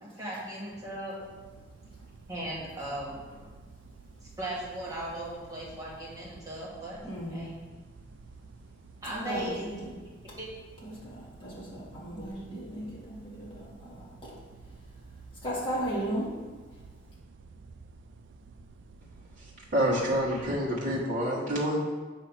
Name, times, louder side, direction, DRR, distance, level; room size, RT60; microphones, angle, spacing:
voice 1, 0.0-1.1 2.3-3.2 4.4-7.0 7.3-7.5 9.0-9.6 10.4-10.5, right 1 dB, 20° right, -6 dB, 1.8 m, -37 dB
sound 1, 1.2-20.7, right 3 dB, 75° right, 0.4 m, -52 dB
voice 2, 7.0-7.5 9.0-10.0 10.3-10.4 10.8-14.4 14.7-14.8 15.4-16.5, equal, 25° left, -7 dB, 2.0 m, -36 dB
voice 3, 19.4-21.8, equal, 40° right, -7 dB, 1.3 m, -28 dB
7.6 x 2.9 x 5.7 m, 1.3 s
head